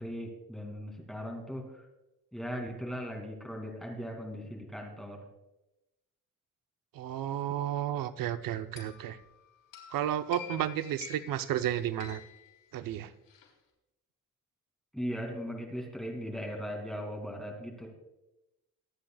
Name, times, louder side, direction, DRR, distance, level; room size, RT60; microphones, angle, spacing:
voice 1, 0.0-1.8 2.3-5.3 14.9-17.9, equal, ahead, 0 dB, 2.5 m, -38 dB
voice 2, 6.9-9.2 9.9-12.2 12.7-13.1, right 11 dB, 80° right, 11 dB, 0.7 m, -32 dB
sound 1, 8.8-13.5, left 9 dB, 80° left, 3.6 m, -50 dB
24.0 x 8.9 x 2.3 m, 0.95 s
cardioid pair, 150°, 33 cm